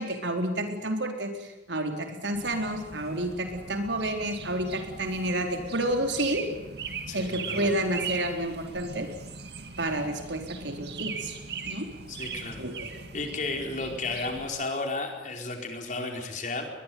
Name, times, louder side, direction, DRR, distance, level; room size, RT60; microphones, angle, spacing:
voice 1, 0.0-6.4 7.1-9.1 9.8-11.3 11.6-11.9 12.6-12.9, right 1 dB, 85° right, 4 dB, 4.2 m, -30 dB
sound 1, 2.3-14.5, right 5 dB, 65° right, 2.4 m, -40 dB
voice 2, 7.1-7.7 12.1-12.6 13.1-16.7, left 3 dB, 45° left, 3 dB, 4.7 m, -33 dB
22.0 x 21.5 x 9.4 m, 1.0 s
head